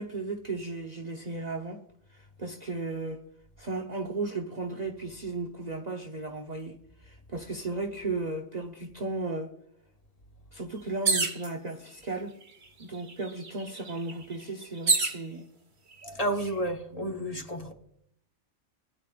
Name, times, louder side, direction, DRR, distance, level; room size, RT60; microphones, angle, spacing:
voice 1, 0.0-1.8 2.1-3.2 3.6-9.5 10.5-12.3 12.8-15.5 16.4-16.5 16.9-17.4, right 3 dB, 40° right, 0.9 m, -35 dB
sound 1, 11.0-11.5 12.4-12.5 12.8-15.2 16.0-16.5, right 4 dB, 60° right, 1.7 m, -28 dB
voice 2, 16.2-17.7, right 1 dB, 30° left, 1.5 m, -31 dB
20.5 x 10.5 x 2.5 m
omnidirectional pair, 1.2 m